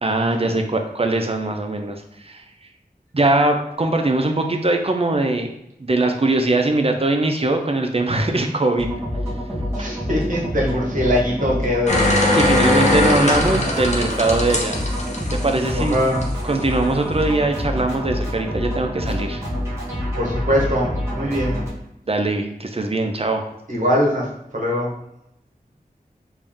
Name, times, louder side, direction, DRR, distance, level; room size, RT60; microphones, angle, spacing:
voice 1, 0.0-2.4 3.1-5.5 5.8-8.9 9.8-9.9 12.3-14.7 15.3-16.0 16.4-19.4 22.1-23.4, right 2 dB, 35° right, 4 dB, 0.5 m, -21 dB
sound 1, 8.8-21.7, equal, 15° right, 1.4 m, -27 dB
voice 2, 9.7-12.1 12.7-12.8 13.1-13.6 15.7-16.3 20.1-21.6 23.7-24.9, equal, 55° right, -4 dB, 1.3 m, -22 dB
sound 2, 11.9-16.2 16.6-16.7, left 1 dB, 45° left, 0.8 m, -20 dB
3.4 x 2.6 x 3.6 m, 0.81 s
wide cardioid pair, 45°, 16 cm